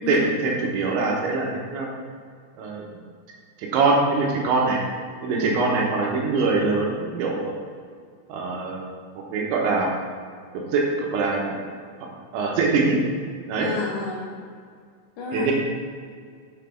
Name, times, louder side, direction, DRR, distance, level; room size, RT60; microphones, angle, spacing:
voice 1, 0.1-1.9 2.6-2.8 3.6-4.8 5.2-7.5 8.3-8.8 9.2-9.9 10.6-11.6 12.3-13.0 13.5-13.7 15.3-15.5, right 3 dB, 75° right, -1 dB, 3.1 m, -23 dB
voice 2, 5.3-5.6 13.6-14.2 15.2-15.5, left 3 dB, 70° left, -4 dB, 3.0 m, -30 dB
7.7 x 5.8 x 5.6 m, 2.1 s
omnidirectional pair, 5.7 m